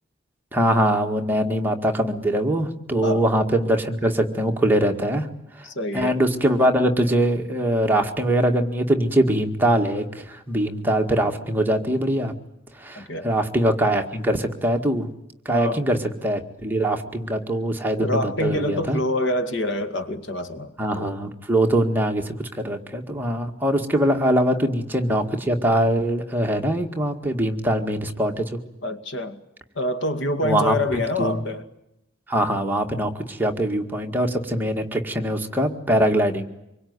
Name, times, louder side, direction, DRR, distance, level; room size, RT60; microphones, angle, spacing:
voice 1, 0.5-5.3 5.5-5.7 5.9-12.3 12.8-15.1 15.5-19.0 20.8-28.6 30.4-31.4 32.3-36.4, right 1 dB, 10° right, 1.9 m, -22 dB
voice 2, 5.6-6.2 13.0-13.3 15.5-15.8 18.0-21.2 28.8-29.4 29.8-31.7, left 1 dB, 65° left, 2.2 m, -26 dB
26.0 x 23.0 x 9.6 m
head